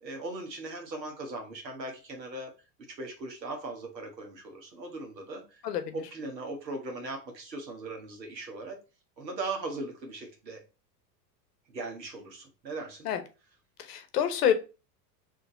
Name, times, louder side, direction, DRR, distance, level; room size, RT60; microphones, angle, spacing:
voice 1, 0.0-2.5 2.9-5.6 5.9-8.8 9.2-10.6 11.7-13.1, right 2 dB, 85° right, 3 dB, 1.3 m, -39 dB
voice 2, 5.6-5.9 13.0-13.2 13.8-14.5, left 9 dB, 70° left, 9 dB, 0.9 m, -27 dB
3.8 x 2.8 x 3.8 m, 0.31 s
figure-of-eight pair, 85°, 50 cm